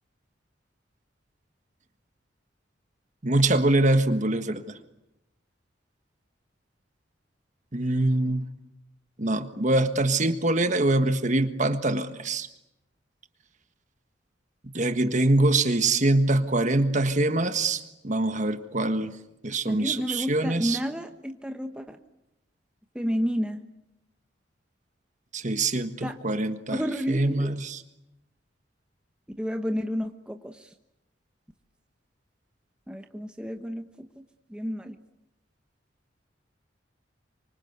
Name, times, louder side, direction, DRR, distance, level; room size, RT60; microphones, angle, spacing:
voice 1, 3.2-4.6 7.7-8.5 9.2-12.5 14.7-19.1 19.4-20.8 25.3-26.8 27.1-27.8, right 2 dB, 40° right, 1.5 m, -24 dB
voice 2, 19.7-22.0 22.9-23.7 26.0-26.2 26.7-27.5 29.4-30.7 32.9-34.1 34.5-35.0, equal, 5° right, 1.1 m, -31 dB
25.5 x 25.0 x 8.2 m
head